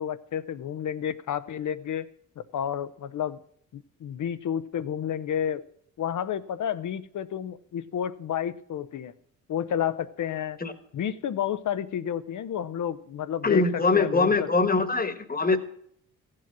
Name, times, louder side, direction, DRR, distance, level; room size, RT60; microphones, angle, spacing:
voice 1, 0.0-2.1 2.4-3.4 3.7-5.6 6.0-9.1 9.5-10.6 10.9-13.6 13.9-14.5, left 9 dB, 60° left, 15 dB, 0.8 m, -31 dB
voice 2, 13.4-15.6, left 3 dB, 25° left, 10 dB, 1.4 m, -23 dB
15.0 x 7.7 x 6.1 m, 0.67 s
supercardioid pair, 60°, 34 cm